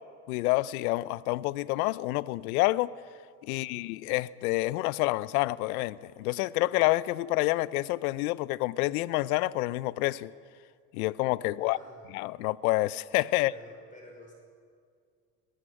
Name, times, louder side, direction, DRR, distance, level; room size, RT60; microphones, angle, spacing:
voice 1, 0.3-2.9 3.4-10.3 10.9-11.8 12.1-13.5, left 19 dB, 80° left, 0.7 m, -28 dB
voice 2, 3.5-3.9 11.4-12.1 13.3-14.3, left 1 dB, 15° left, 5.5 m, -51 dB
20.0 x 15.5 x 8.9 m
hypercardioid pair, 80°, 44 cm